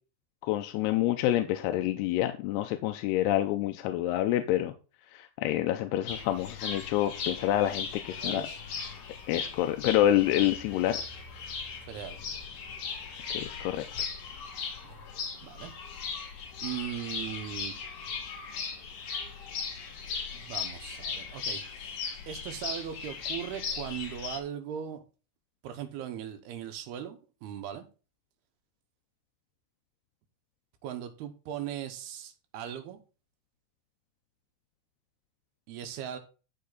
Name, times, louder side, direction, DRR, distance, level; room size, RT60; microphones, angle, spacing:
voice 1, 0.4-4.7 5.1-8.4 9.3-11.0 13.3-13.8, left 13 dB, 85° left, 7 dB, 2.7 m, -27 dB
sound 1, 6.1-24.4, left 5 dB, 55° left, 3.7 m, -38 dB
voice 2, 8.1-8.6 11.9-12.2 14.8-15.0 15.4-15.7 16.6-17.7 20.3-21.8 22.3-25.0 25.6-27.9 30.8-33.0 35.7-36.2, right 10 dB, 75° right, 8 dB, 3.0 m, -39 dB
13.5 x 5.6 x 4.0 m, 0.34 s
omnidirectional pair, 4.8 m